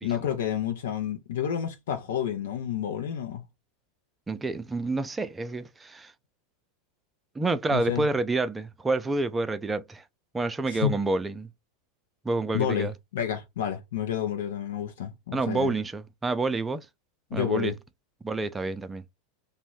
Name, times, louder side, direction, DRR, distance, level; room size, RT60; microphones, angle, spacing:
voice 1, 0.0-3.4 7.7-8.1 10.7-10.9 12.5-15.7 17.3-17.7, left 9 dB, 80° left, 0.5 m, -30 dB
voice 2, 4.3-6.1 7.4-10.0 10.3-11.5 12.2-12.9 15.3-16.9 17.3-17.7 18.2-19.0, right 3 dB, 15° right, 0.4 m, -28 dB
2.6 x 2.1 x 3.1 m
hypercardioid pair, 110°, 0 cm